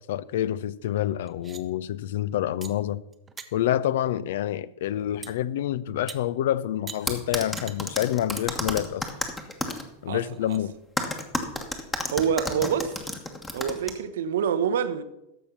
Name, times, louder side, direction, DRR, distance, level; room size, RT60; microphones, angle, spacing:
voice 1, 0.0-3.0 3.5-9.0 10.0-10.7, left 12 dB, 55° left, 0.4 m, -27 dB
sound 1, 1.3-1.6 2.6-2.7 3.1-3.5 5.2-5.3 6.1-6.2 6.9-7.0 7.6-7.8 8.4-8.5 8.9-9.0 9.7-9.8 10.2-10.6 12.3-12.4 12.9-13.1, right 5 dB, 15° right, 0.8 m, -42 dB
sound 2, 7.1-9.8 11.0-13.9, left 2 dB, 10° left, 1.2 m, -30 dB
voice 2, 12.1-12.9 13.5-15.0, right 8 dB, 60° right, 0.7 m, -26 dB
14.0 x 5.5 x 5.7 m
figure-of-eight pair, 90°, 0 cm